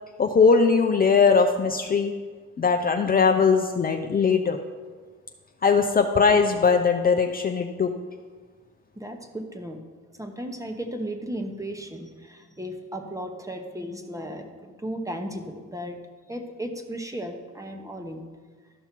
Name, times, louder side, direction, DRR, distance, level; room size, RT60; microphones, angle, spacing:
voice 1, 0.2-2.1 2.6-4.6 5.6-7.9, left 5 dB, 30° left, 4 dB, 0.6 m, -20 dB
voice 2, 9.0-9.8 10.2-16.0 16.3-18.2, equal, 10° right, 5 dB, 1.1 m, -35 dB
13.0 x 5.5 x 4.5 m, 1.5 s
cardioid pair, 90°, 30 cm